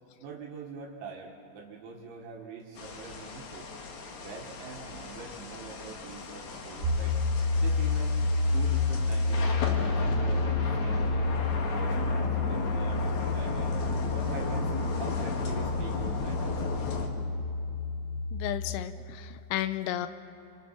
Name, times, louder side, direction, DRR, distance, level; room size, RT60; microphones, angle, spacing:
voice 1, 0.2-3.7 4.1-7.2 7.6-8.2 8.5-10.5 10.8-11.3 11.7-13.8 14.1-17.1, right 5 dB, 70° right, -1 dB, 3.8 m, -44 dB
sound 1, 2.8-17.1, left 4 dB, 65° left, 1.9 m, -36 dB
sound 2, 6.8-18.7, left 3 dB, 90° right, 3.9 m, -29 dB
voice 2, 18.3-20.1, left 13 dB, 85° left, 11 dB, 3.3 m, -33 dB
28.0 x 26.0 x 6.0 m, 2.8 s
omnidirectional pair, 5.9 m